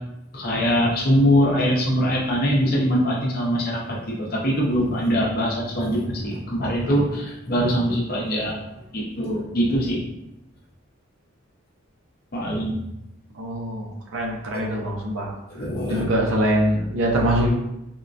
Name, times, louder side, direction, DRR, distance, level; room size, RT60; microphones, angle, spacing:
voice 1, 0.3-8.5 8.9-10.0 12.3-12.8 14.5-14.6 15.5-16.0, equal, 50° left, -3 dB, 0.7 m, -22 dB
voice 2, 13.3-15.3 15.8-17.5, equal, 70° right, 0 dB, 0.6 m, -23 dB
3.6 x 2.1 x 2.5 m, 0.86 s
head